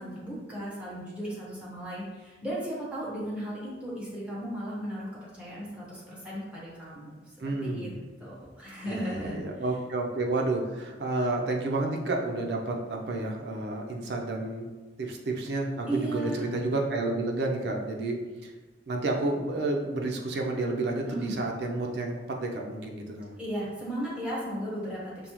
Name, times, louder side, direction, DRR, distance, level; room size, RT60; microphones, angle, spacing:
voice 1, 0.0-7.9 8.2-9.4 15.9-16.4 21.0-21.3 23.4-25.3, right 1 dB, 5° right, -8 dB, 1.1 m, -36 dB
voice 2, 7.4-7.9 8.9-14.7 15.0-18.5 18.9-23.4, right 2 dB, 70° right, 1 dB, 0.5 m, -30 dB
5.3 x 2.0 x 3.0 m, 1.3 s
head